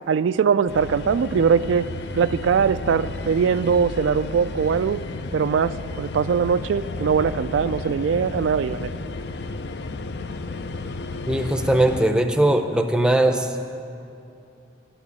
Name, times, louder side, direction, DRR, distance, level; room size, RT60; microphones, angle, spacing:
voice 1, 0.1-1.9 2.1-5.0 5.3-8.9, right 6 dB, 85° right, 13 dB, 0.3 m, -21 dB
sound 1, 0.7-12.0, left 3 dB, 60° left, 0.5 m, -32 dB
voice 2, 11.3-13.7, right 1 dB, 5° right, 6 dB, 0.6 m, -20 dB
11.0 x 8.7 x 8.3 m, 2.7 s
head